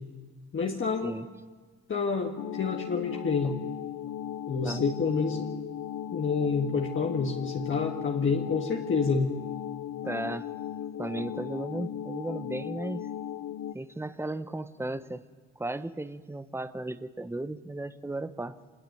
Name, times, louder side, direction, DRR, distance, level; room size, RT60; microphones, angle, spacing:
voice 1, 0.5-1.2 1.9-3.6 4.5-5.5 6.1-9.3, left 5 dB, 40° left, 1 dB, 1.9 m, -28 dB
sound 1, 2.4-13.7, left 10 dB, 75° left, 0.8 m, -37 dB
voice 2, 10.0-10.5 11.0-13.1 13.7-15.2 15.6-18.6, right 2 dB, 10° right, 12 dB, 1.1 m, -35 dB
25.0 x 19.5 x 9.4 m, 1.4 s
cardioid pair, 90°, 30 cm